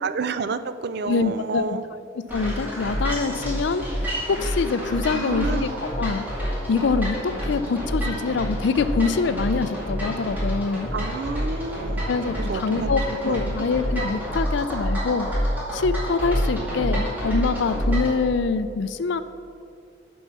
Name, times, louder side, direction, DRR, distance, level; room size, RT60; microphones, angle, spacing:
voice 1, 0.0-1.8 5.1-5.7 10.9-12.1 12.5-12.9 13.3-13.5, right 4 dB, 55° right, 13 dB, 0.4 m, -29 dB
voice 2, 1.1-1.8 2.3-5.7 6.0-6.2 6.7-10.9 12.1-15.3 15.7-19.2, left 4 dB, 65° left, 12 dB, 0.4 m, -25 dB
sound 1, 2.3-18.2, equal, 10° right, 2.2 m, -28 dB
8.4 x 4.7 x 6.7 m, 2.5 s
head